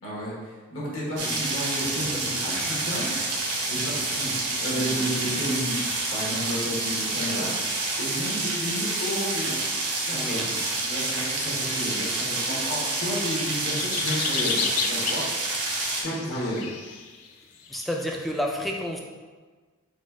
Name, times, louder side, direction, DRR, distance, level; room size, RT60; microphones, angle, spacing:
voice 1, 0.0-3.1 3.7-4.3 4.6-5.8 6.1-7.5 8.0-9.7 10.1-10.4 10.8-15.6 16.0-16.7, equal, 60° left, -6 dB, 1.4 m, -32 dB
voice 2, 1.2-2.7 10.1-10.7 17.7-19.0, equal, ahead, 0 dB, 0.3 m, -32 dB
sound 1, 1.2-16.0, right 2 dB, 80° right, 0.9 m, -28 dB
sound 2, 10.3-11.6 11.8-12.9 13.2-18.4, left 6 dB, 90° left, 0.4 m, -34 dB
4.2 x 2.4 x 4.6 m, 1.4 s
head